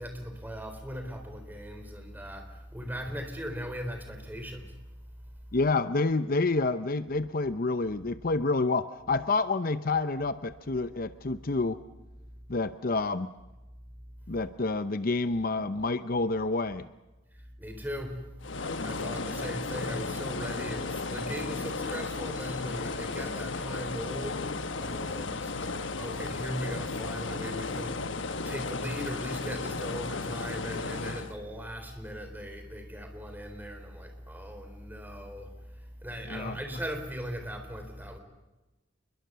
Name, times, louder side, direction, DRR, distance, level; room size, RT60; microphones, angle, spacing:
voice 1, 0.0-4.8 17.3-18.3 18.8-38.2, equal, 10° right, 5 dB, 4.0 m, -39 dB
voice 2, 5.5-11.8 12.5-13.3 14.3-16.9 36.3-36.6, left 3 dB, 50° left, 12 dB, 0.8 m, -28 dB
sound 1, 18.4-31.3, left 3 dB, 70° left, 1.3 m, -34 dB
28.5 x 22.0 x 6.9 m, 1.1 s
head